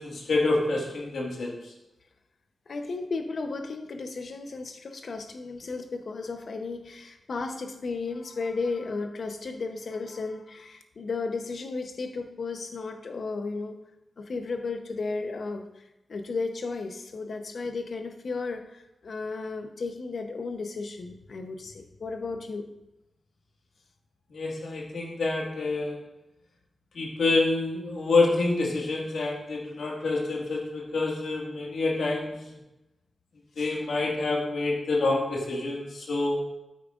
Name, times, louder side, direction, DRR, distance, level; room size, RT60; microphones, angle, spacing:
voice 1, 0.0-1.6 24.3-26.0 26.9-32.6 33.6-36.4, left 3 dB, 85° left, -2 dB, 1.8 m, -27 dB
voice 2, 2.7-13.8 14.2-15.6 16.1-22.7, left 3 dB, 65° left, 6 dB, 0.8 m, -34 dB
8.8 x 8.5 x 2.5 m, 0.94 s
wide cardioid pair, 100°, 0 cm